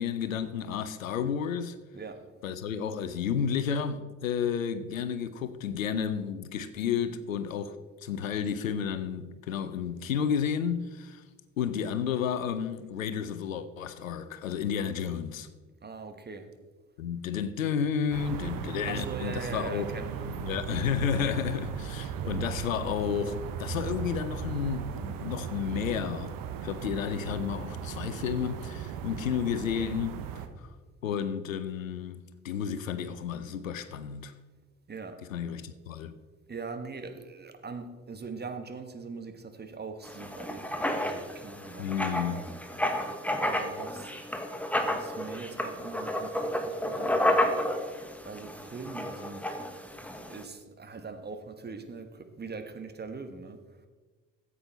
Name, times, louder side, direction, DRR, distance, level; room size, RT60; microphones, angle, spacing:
voice 1, 0.0-1.8 2.4-11.2 11.6-15.5 17.0-19.9 20.3-26.3 26.6-30.3 30.6-30.7 31.0-34.3 35.3-36.1 41.8-42.6, left 7 dB, 80° left, 0.6 m, -31 dB
voice 2, 15.8-16.5 18.9-20.3 34.9-35.2 36.5-42.4 43.4-44.1 44.8-47.2 48.2-49.4 50.3-53.6, right 4 dB, 25° right, 1.4 m, -41 dB
sound 1, 18.1-30.5, right 8 dB, 55° right, 1.0 m, -37 dB
Writing, 40.0-50.4, left 1 dB, 5° left, 1.3 m, -31 dB
14.0 x 8.4 x 4.1 m
figure-of-eight pair, 45°, 40 cm